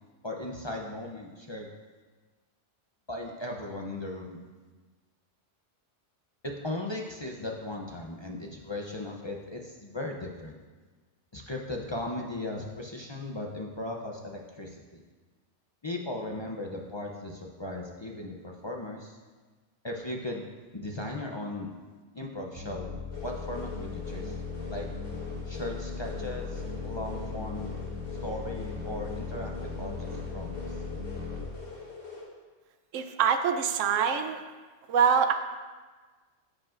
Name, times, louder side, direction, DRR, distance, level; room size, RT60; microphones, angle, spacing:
voice 1, 0.2-1.7 3.1-4.4 6.4-10.5 11.3-15.0 15.8-19.2 19.8-20.5 20.7-21.7 22.1-22.9 23.2-24.4 24.7-24.9 25.4-27.7 28.2-30.6, left 1 dB, 35° left, 0 dB, 0.5 m, -37 dB
sound 1, 22.5-31.5, left 4 dB, 45° right, 0.7 m, -38 dB
sound 2, 23.1-32.2, left 4 dB, 50° left, 1.6 m, -44 dB
voice 2, 32.9-34.4 34.9-35.3, right 7 dB, 90° right, 7 dB, 0.9 m, -24 dB
14.5 x 5.0 x 2.5 m, 1.4 s
omnidirectional pair, 1.3 m